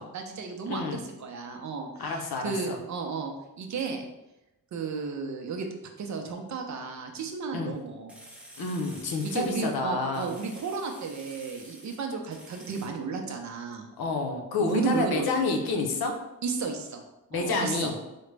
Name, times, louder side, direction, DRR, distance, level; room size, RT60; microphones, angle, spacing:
voice 1, 0.0-4.1 4.7-5.7 6.0-8.1 9.2-13.9 14.6-15.2 16.4-17.0 17.3-17.9, right 5 dB, 50° right, 3 dB, 0.5 m, -33 dB
voice 2, 0.7-1.0 2.0-2.8 7.5-7.8 8.6-10.3 14.0-16.1 17.3-17.9, left 3 dB, 85° left, 3 dB, 0.7 m, -29 dB
sound 1, 7.8-7.9 8.1-9.7 10.1-12.0 12.3-12.9, right 1 dB, 5° right, 0.5 m, -49 dB
4.9 x 2.1 x 3.2 m, 0.96 s
wide cardioid pair, 170°, 36 cm